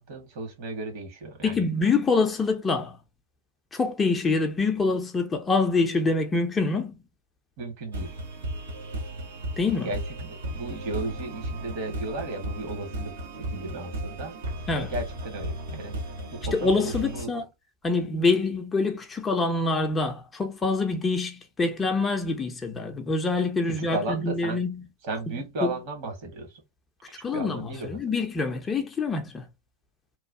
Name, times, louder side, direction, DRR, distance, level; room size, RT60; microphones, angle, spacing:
voice 1, 0.0-1.6 7.6-8.2 9.8-14.4 14.8-15.9 16.3-17.3 23.6-24.6 25.0-26.6 27.3-28.0, right 2 dB, 45° right, 1.3 m, -35 dB
voice 2, 1.4-3.0 3.7-6.9 9.6-9.9 14.7-14.9 16.5-17.5 17.8-24.8 25.3-25.4 27.2-29.4, left 3 dB, 15° left, 0.6 m, -25 dB
sound 1, 7.9-17.2, right 1 dB, 65° right, 0.9 m, -35 dB
3.0 x 2.3 x 2.6 m
figure-of-eight pair, 90°, 0 cm